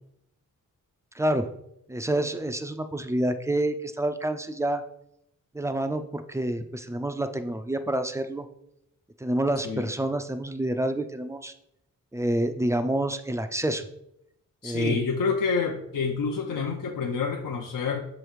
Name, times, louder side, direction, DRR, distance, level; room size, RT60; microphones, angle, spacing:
voice 1, 1.2-1.5 1.9-4.8 5.5-8.5 9.2-11.5 12.1-13.8 14.6-15.0, right 1 dB, 10° right, 8 dB, 0.3 m, -28 dB
voice 2, 14.6-18.0, left 5 dB, 80° left, 2 dB, 0.6 m, -28 dB
6.2 x 3.1 x 4.9 m, 0.77 s
wide cardioid pair, 155°, 32 cm